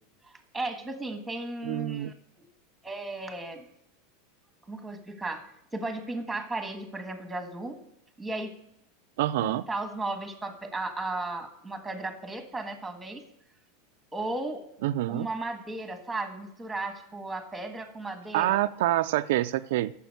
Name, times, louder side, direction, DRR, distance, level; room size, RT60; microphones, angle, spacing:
voice 1, 0.5-2.5 2.8-3.6 4.7-7.8 8.2-8.5 9.4-13.2 14.1-14.6 15.1-18.6, right 2 dB, 5° right, 6 dB, 1.6 m, -35 dB
voice 2, 1.6-2.1 9.2-9.6 14.8-15.3 18.3-19.9, right 14 dB, 70° right, 10 dB, 0.3 m, -26 dB
9.1 x 7.1 x 6.6 m, 0.75 s
supercardioid pair, 130°, 0 cm